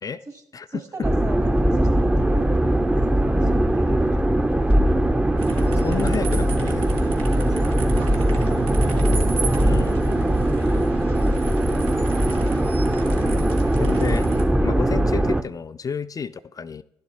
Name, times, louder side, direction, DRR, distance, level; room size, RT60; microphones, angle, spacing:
voice 1, 0.7-4.4 7.3-8.2 8.6-8.9 9.5-11.6, right 3 dB, 35° right, 6 dB, 2.0 m, -39 dB
sound 1, 1.0-15.4, right 1 dB, 10° right, 0.6 m, -20 dB
sound 2, 5.4-14.4, right 4 dB, 80° right, 1.2 m, -34 dB
voice 2, 5.8-6.9 9.6-10.0 13.8-14.3 14.6-16.8, left 6 dB, 40° left, 11 dB, 0.4 m, -30 dB
11.0 x 7.1 x 4.0 m, 0.75 s
hypercardioid pair, 45°, 9 cm